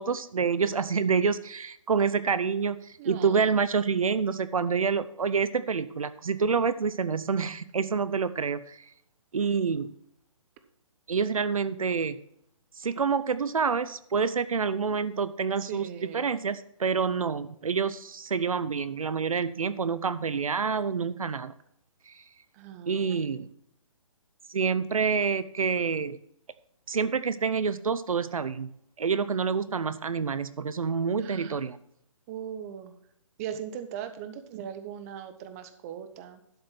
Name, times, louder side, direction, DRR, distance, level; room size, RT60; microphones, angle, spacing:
voice 1, 0.0-8.8 9.3-9.9 11.1-12.2 12.8-15.9 16.1-21.5 22.1-22.2 22.9-23.5 24.5-26.2 26.9-28.7 29.0-31.8, right 5 dB, 85° right, 15 dB, 0.6 m, -27 dB
voice 2, 3.0-3.6 15.6-16.3 22.5-23.2 31.2-31.6 32.3-32.9 33.4-36.4, right 9 dB, 25° right, 9 dB, 0.9 m, -39 dB
12.0 x 5.2 x 5.8 m, 0.72 s
hypercardioid pair, 145°, 17 cm